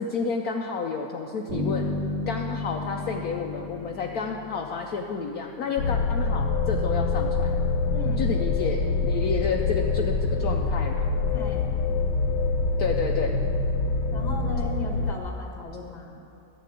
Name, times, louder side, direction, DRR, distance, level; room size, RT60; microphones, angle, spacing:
voice 1, 0.0-1.9 2.3-7.5 8.2-11.1 12.8-13.4, left 5 dB, 65° left, 1 dB, 1.1 m, -30 dB
Bass guitar, 1.5-5.3, left 2 dB, 80° right, 3.7 m, -32 dB
sound 1, 5.8-15.1, left 3 dB, 90° left, 1.3 m, -25 dB
voice 2, 7.9-8.3 11.3-11.7 14.1-16.2, left 1 dB, 25° left, 2 dB, 1.4 m, -36 dB
11.5 x 8.4 x 8.2 m, 2.8 s
omnidirectional pair, 1.9 m